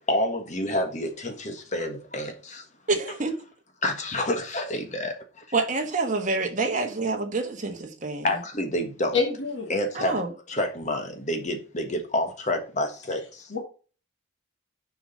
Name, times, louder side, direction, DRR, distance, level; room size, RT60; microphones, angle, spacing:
voice 1, 0.0-2.3 3.8-5.1 8.2-9.2 9.7-13.5, left 1 dB, 35° left, 1.4 m, -28 dB
voice 2, 2.9-3.3 5.5-8.3 9.9-10.3, right 3 dB, 35° right, 1.3 m, -27 dB
voice 3, 9.1-9.7 13.5-13.6, left 4 dB, 60° left, 2.1 m, -26 dB
6.9 x 5.0 x 5.4 m
head